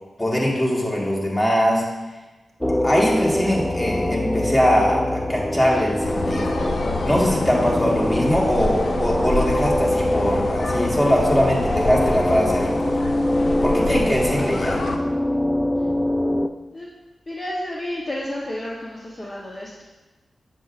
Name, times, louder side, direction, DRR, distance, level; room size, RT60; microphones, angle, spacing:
voice 1, 0.2-1.8 2.8-6.5 7.0-13.0 13.6-14.8, equal, 20° left, -3 dB, 1.6 m, -21 dB
sound 1, 2.6-16.5, left 1 dB, 5° left, 0.3 m, -24 dB
sound 2, 6.0-15.0, left 2 dB, 70° left, 0.5 m, -27 dB
voice 2, 17.3-19.8, left 1 dB, 40° left, -4 dB, 0.8 m, -31 dB
7.7 x 6.0 x 2.4 m, 1.2 s
cardioid pair, 70°, 0 cm